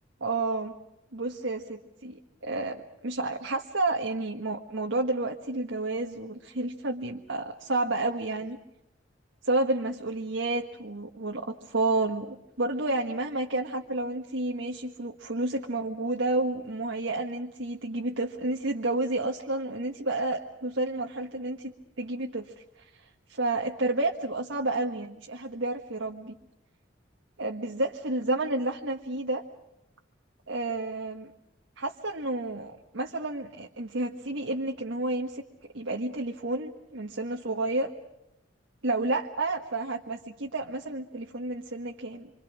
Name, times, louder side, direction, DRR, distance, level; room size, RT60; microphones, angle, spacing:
voice 1, 0.2-0.7 1.1-8.6 9.4-26.3 27.4-29.4 30.5-31.3 31.8-35.4 35.7-37.9 38.8-42.3, right 2 dB, 75° right, 2 dB, 1.5 m, -30 dB
26.5 x 26.5 x 6.2 m, 0.87 s
head